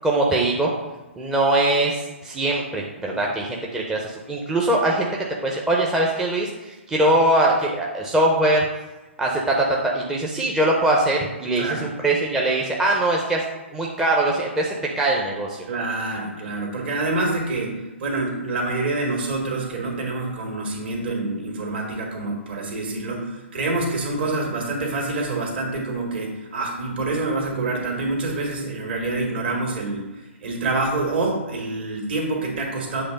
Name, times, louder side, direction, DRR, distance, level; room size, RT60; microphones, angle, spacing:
voice 1, 0.0-0.7 1.2-5.1 5.4-8.6 9.2-13.4 13.7-15.6, right 1 dB, 10° right, -2 dB, 0.7 m, -22 dB
voice 2, 15.7-30.1 30.4-33.0, right 2 dB, 55° right, 1 dB, 2.1 m, -26 dB
7.9 x 3.4 x 5.2 m, 1.1 s
figure-of-eight pair, 125°, 7 cm